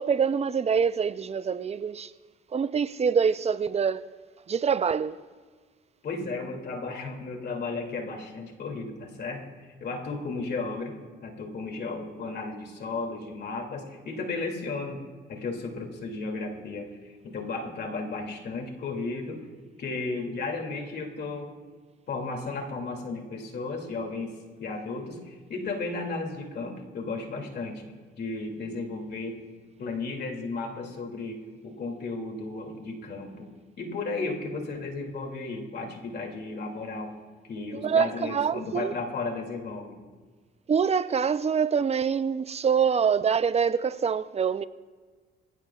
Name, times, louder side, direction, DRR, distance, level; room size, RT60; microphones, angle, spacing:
voice 1, 0.0-2.1 2.5-4.1 4.5-5.2 37.7-38.9 40.7-44.6, right 6 dB, 30° right, 0.5 m, -25 dB
voice 2, 6.0-15.0 15.3-19.5 19.8-21.5 22.1-27.8 28.2-29.4 29.8-33.5 33.8-37.1 37.4-40.0, left 3 dB, 55° left, 2.6 m, -34 dB
23.5 x 16.0 x 2.4 m
cardioid pair, 90°, 20 cm